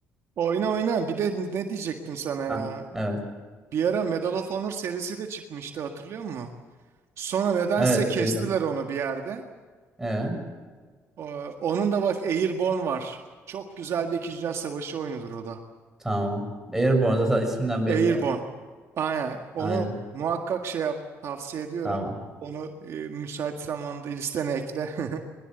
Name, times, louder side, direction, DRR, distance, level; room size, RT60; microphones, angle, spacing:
voice 1, 0.4-2.8 3.7-6.5 7.2-9.4 11.2-13.2 13.5-15.6 17.9-18.4 19.0-19.9 20.1-20.9 21.2-22.0 22.4-25.2, right 6 dB, 60° right, 4 dB, 1.8 m, -28 dB
voice 2, 7.8-8.5 10.0-10.4 16.0-16.4 16.7-18.2 19.6-19.9 21.8-22.1, right 1 dB, 5° right, 2 dB, 6.7 m, -25 dB
22.5 x 21.5 x 8.0 m, 1.4 s
cardioid pair, 115°, 5 cm